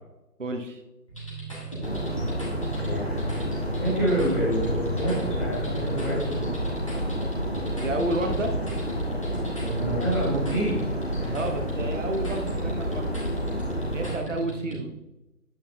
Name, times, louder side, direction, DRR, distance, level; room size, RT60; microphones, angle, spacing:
voice 1, 0.4-0.8 7.8-8.6 11.3-13.2 13.9-14.9, right 1 dB, 50° right, 4 dB, 0.8 m, -31 dB
sound 1, 1.1-14.8, right 2 dB, 20° left, 1.5 m, -37 dB
sound 2, 1.8-14.2, equal, 40° left, 0.9 m, -30 dB
voice 2, 2.7-3.4 3.7-6.4 9.6-10.7 11.2-11.3, right 1 dB, 5° left, -17 dB, 2.2 m, -28 dB
8.8 x 8.5 x 2.3 m, 0.98 s
figure-of-eight pair, 165°, 48 cm